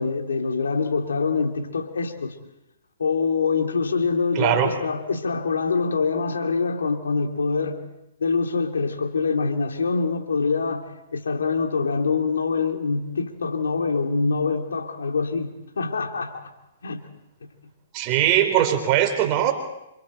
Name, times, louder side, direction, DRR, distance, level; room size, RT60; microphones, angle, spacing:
voice 1, 0.0-2.3 3.0-7.8 8.2-10.8 11.1-16.4 16.8-17.0 17.4-17.5, left 4 dB, 85° left, 2.7 m, -25 dB
voice 2, 4.3-4.7 17.9-19.5, right 11 dB, 35° right, 4.1 m, -20 dB
28.0 x 26.0 x 4.5 m
hypercardioid pair, 130°, 0 cm